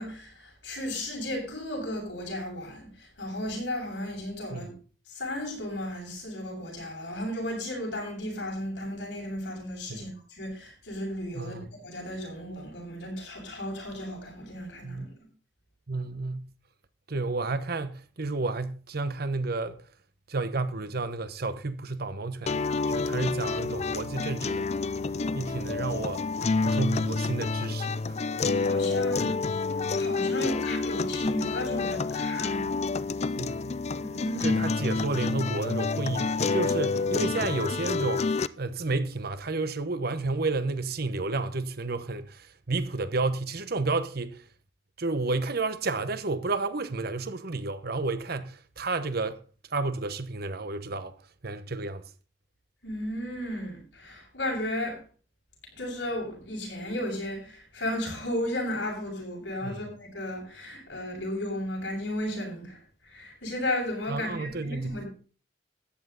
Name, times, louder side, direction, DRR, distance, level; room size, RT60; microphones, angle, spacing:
voice 1, 0.0-4.7 5.1-15.3 28.4-29.4 29.9-32.9 34.0-34.6 52.8-55.0 55.8-62.8 63.1-65.1, left 1 dB, 70° left, 7.3 m, -34 dB
voice 2, 11.3-11.7 14.8-15.1 15.9-16.5 17.1-19.8 20.3-22.6 22.9-24.7 25.3-26.2 26.6-28.0 33.4-33.7 34.4-44.4 45.0-49.4 49.7-51.1 51.4-52.0 59.6-59.9 64.1-65.0, right 3 dB, 60° right, 1.1 m, -31 dB
sound 1, 22.5-38.5, left 4 dB, 35° left, 0.5 m, -28 dB
14.0 x 10.0 x 4.0 m
head